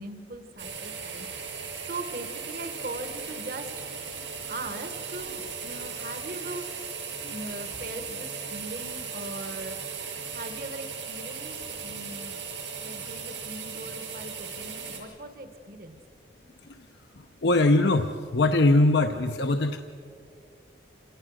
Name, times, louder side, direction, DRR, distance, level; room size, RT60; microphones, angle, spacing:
voice 1, 0.0-1.6 1.8-3.9 4.5-6.7 7.3-9.9 10.3-12.4 12.8-16.0, right 2 dB, 50° right, 8 dB, 1.3 m, -40 dB
sound 1, 0.6-15.0, right 6 dB, 80° right, 7.1 m, -37 dB
voice 2, 17.4-19.8, left 2 dB, 70° left, 6 dB, 0.8 m, -21 dB
27.5 x 18.5 x 6.4 m, 2.4 s
head